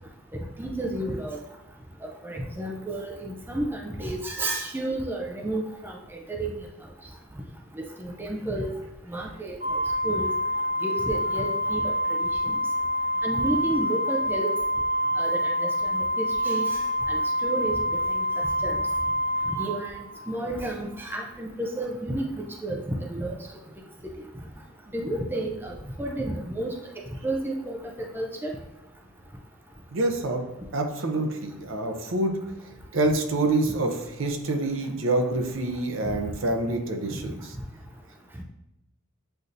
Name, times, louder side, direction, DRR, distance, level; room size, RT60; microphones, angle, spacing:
voice 1, 0.6-1.4 2.0-5.9 6.3-6.5 8.0-8.7 9.1-9.6 10.0-10.3 10.8-11.9 12.2-12.3 13.2-14.5 15.2-16.8 17.1-17.8 18.6-18.8 19.6-20.0 20.3-22.8 23.1-23.4 24.9-26.8 27.2-27.8 28.1-28.5 36.0-36.2, right 1 dB, 10° right, 1 dB, 0.4 m, -31 dB
Organ, 9.6-20.3, equal, 35° right, 1.3 m, -27 dB
voice 2, 29.9-30.4 30.7-32.4 32.9-33.9 34.2-37.5, right 2 dB, 65° right, 4 dB, 0.6 m, -26 dB
7.8 x 2.6 x 2.5 m, 0.93 s
head